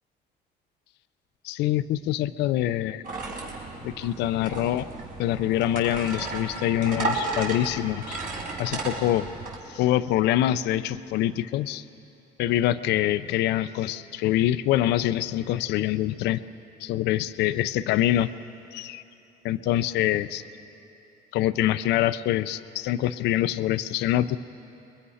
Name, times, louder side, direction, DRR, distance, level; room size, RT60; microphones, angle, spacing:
voice 1, 1.4-3.0 3.8-4.9 5.2-8.2 8.6-9.3 9.7-11.8 12.4-16.4 16.8-18.3 18.7-19.0 19.4-20.4 21.3-24.4, left 13 dB, 85° left, 13 dB, 0.6 m, -25 dB
sound 1, 3.0-9.6, right 3 dB, 60° right, 4.6 m, -33 dB
28.5 x 22.0 x 5.7 m, 2.9 s
cardioid pair, 110°, 17 cm